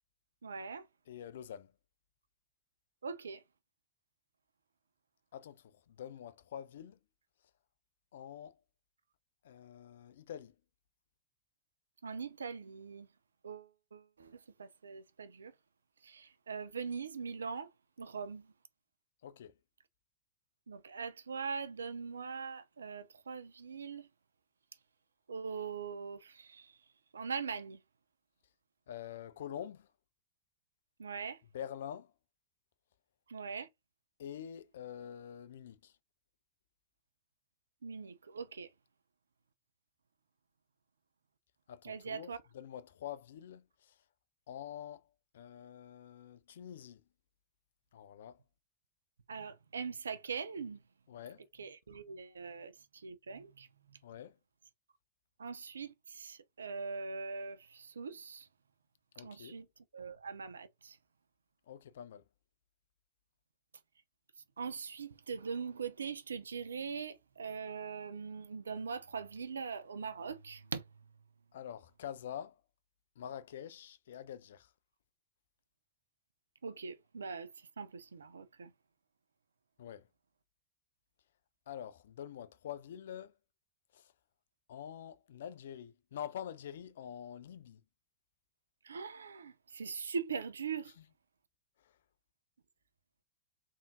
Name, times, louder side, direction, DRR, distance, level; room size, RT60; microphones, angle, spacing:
voice 1, 0.4-0.9 3.0-3.4 12.0-13.1 13.4-15.5 16.0-17.7 18.0-18.5 20.7-24.1 25.3-26.7 27.1-27.8 31.0-31.4 33.3-33.7 37.8-38.7 41.8-42.4 49.3-50.8 51.6-54.0 55.4-58.5 59.2-59.7 59.9-61.0 64.6-70.8 76.6-77.5 77.8-78.7 88.8-90.9, right 5 dB, 70° right, 0.4 m, -42 dB
voice 2, 1.1-1.7 5.3-7.0 8.1-8.6 9.4-10.6 19.2-19.5 28.9-29.9 31.5-32.1 34.2-36.0 41.7-44.0 44.5-45.1 45.3-47.0 47.9-48.4 51.1-51.4 54.0-54.4 59.2-59.6 61.7-62.2 71.5-72.6 73.2-74.7 79.8-80.1 81.7-83.3 83.9-84.1 84.7-87.8 91.8-92.0, left 9 dB, 60° left, 0.3 m, -46 dB
3.5 x 2.7 x 2.3 m
figure-of-eight pair, 90°, 0 cm